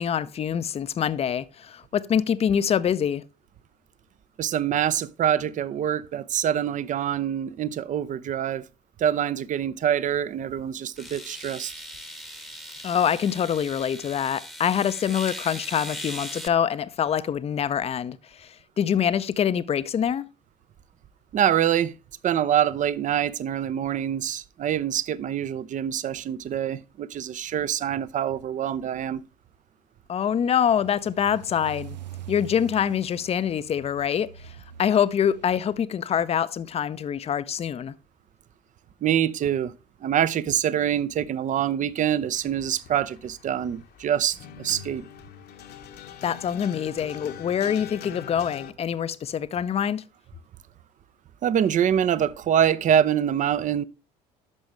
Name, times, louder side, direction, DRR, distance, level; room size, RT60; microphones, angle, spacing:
voice 1, 0.0-3.2 12.8-20.3 30.1-32.0 32.3-34.5 34.8-37.9 46.2-50.0, left 8 dB, 30° left, 0.5 m, -25 dB
voice 2, 4.4-8.6 9.0-11.7 21.3-21.9 22.2-29.2 39.0-39.7 40.0-45.0 51.4-53.8, right 9 dB, 35° right, 0.6 m, -25 dB
sound 1, 10.1-10.2 11.0-16.5, equal, ahead, 1.0 m, -39 dB
sound 2, 30.7-35.8, right 11 dB, 85° right, 0.4 m, -43 dB
sound 3, 42.3-48.7, left 9 dB, 50° left, 0.9 m, -43 dB
10.5 x 6.2 x 3.1 m
figure-of-eight pair, 55°, 21 cm